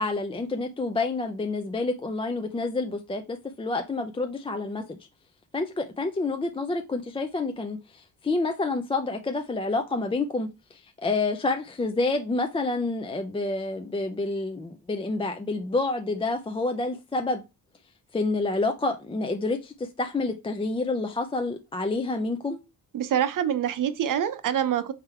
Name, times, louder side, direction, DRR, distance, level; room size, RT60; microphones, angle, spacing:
voice 1, 0.0-4.8 5.5-17.4 18.1-22.6, left 3 dB, 15° left, 0.4 m, -28 dB
voice 2, 22.9-24.9, right 9 dB, 55° right, 0.7 m, -25 dB
3.6 x 3.4 x 4.3 m
cardioid pair, 90°, 39 cm